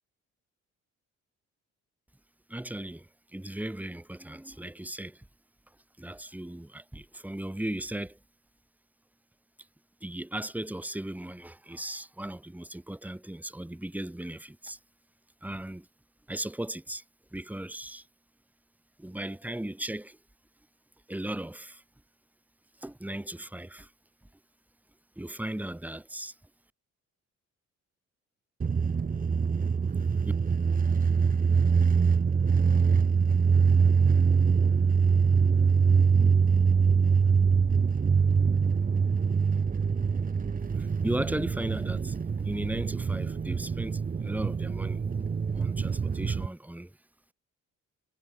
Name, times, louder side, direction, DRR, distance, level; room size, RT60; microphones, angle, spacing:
voice 1, 2.5-5.2 6.0-8.2 10.0-14.8 15.4-15.9 16.3-17.0 17.3-18.1 19.0-20.2 21.1-21.8 22.8-23.9 25.2-26.3 40.8-45.1 45.5-46.9, right 1 dB, 5° right, 2.5 m, -37 dB
sound 1, 28.6-46.5, right 5 dB, 30° right, 1.0 m, -24 dB
cardioid pair, 90°, 30 cm